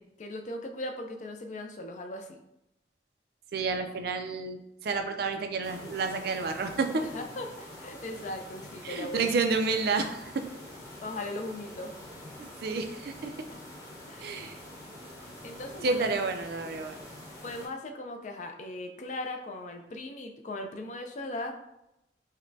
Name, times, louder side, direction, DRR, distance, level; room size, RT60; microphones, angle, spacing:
voice 1, 0.2-2.4 7.0-9.4 11.0-11.9 13.5-13.6 14.1-14.3 15.4-16.1 17.4-21.7, left 1 dB, 40° left, 4 dB, 0.4 m, -38 dB
voice 2, 3.5-7.0 8.8-10.5 12.4-13.3 14.2-14.6 15.8-17.0, right 4 dB, 60° right, 6 dB, 0.4 m, -30 dB
sound 1, 5.6-17.7, left 1 dB, 15° left, 0.9 m, -46 dB
5.0 x 2.1 x 2.7 m, 0.86 s
head